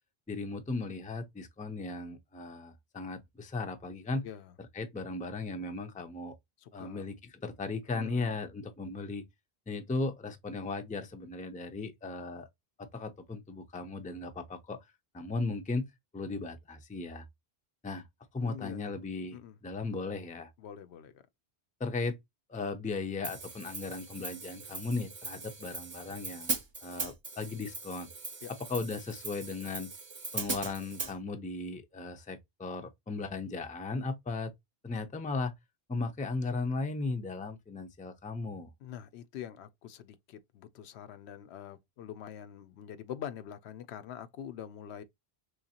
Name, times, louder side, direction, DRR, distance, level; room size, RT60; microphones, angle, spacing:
voice 1, 0.3-4.3 4.7-6.3 6.7-9.3 9.7-12.5 12.8-14.8 15.1-15.9 16.1-17.2 17.8-18.1 18.3-20.5 21.8-22.2 22.5-26.5 26.8-28.1 28.7-29.9 30.3-34.5 34.8-35.5 35.9-38.7, left 3 dB, 10° left, 0.4 m, -36 dB
voice 2, 6.6-7.1 7.9-8.4 18.4-19.0 19.3-19.6 20.6-21.2 28.4-28.5 38.8-45.0, left 9 dB, 85° left, 0.8 m, -45 dB
Hi-hat, 23.2-31.1, right 4 dB, 35° right, 0.6 m, -40 dB
3.9 x 3.2 x 2.8 m
omnidirectional pair, 1.1 m